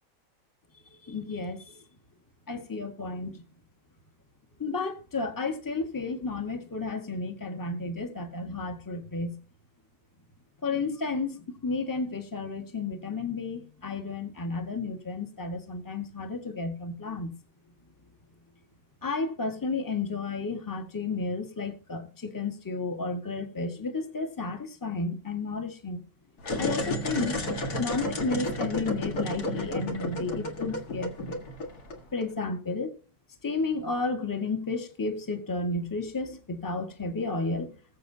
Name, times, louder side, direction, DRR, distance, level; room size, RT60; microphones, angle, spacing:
voice 1, 1.0-1.7 2.5-3.4 4.6-9.3 10.6-17.3 19.0-26.0 26.6-27.4 27.8-31.4 32.1-32.9 33.4-37.7, left 3 dB, 10° left, 1.2 m, -32 dB
sound 1, 26.4-32.2, left 1 dB, 50° left, 2.3 m, -32 dB
20.5 x 7.7 x 2.8 m
omnidirectional pair, 2.2 m